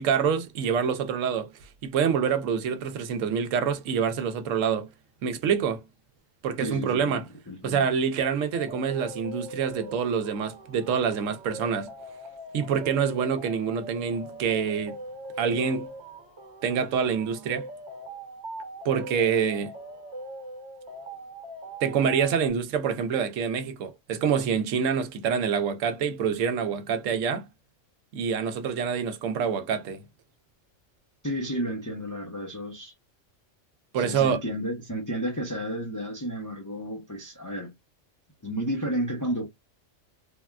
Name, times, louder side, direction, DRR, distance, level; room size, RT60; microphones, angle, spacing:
voice 1, 0.0-1.5 1.8-4.9 5.2-5.8 6.4-7.2 7.6-11.9 12.5-15.0 15.4-15.9 16.6-17.7 18.8-19.7 21.8-27.5 28.1-30.0 33.9-34.4, right 7 dB, 85° right, 1.0 m, -26 dB
voice 2, 6.6-7.9 31.2-32.9 34.0-37.7 38.4-39.5, equal, 20° left, 0.5 m, -32 dB
sound 1, 8.5-22.5, right 1 dB, 60° right, 1.1 m, -41 dB
3.4 x 2.2 x 2.3 m
omnidirectional pair, 1.3 m